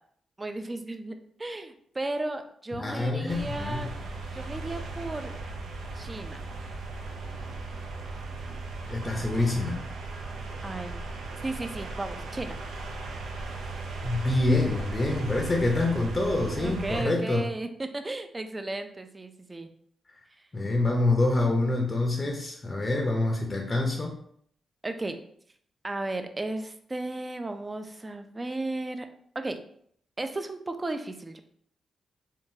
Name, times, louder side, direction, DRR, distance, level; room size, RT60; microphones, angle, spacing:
voice 1, 0.4-3.9 4.3-5.3 6.0-6.4 10.6-11.1 11.4-12.6 16.6-19.7 24.8-25.2 25.8-29.1 29.4-29.6 30.2-31.4, right 2 dB, 25° right, 7 dB, 0.4 m, -34 dB
voice 2, 2.8-3.9 8.9-9.8 14.0-17.5 20.5-24.2, left 2 dB, 30° left, 1 dB, 0.5 m, -26 dB
sound 1, 3.3-17.0, right 3 dB, 90° right, 0.5 m, -37 dB
3.7 x 2.2 x 2.6 m, 0.64 s
cardioid pair, 80°, 0 cm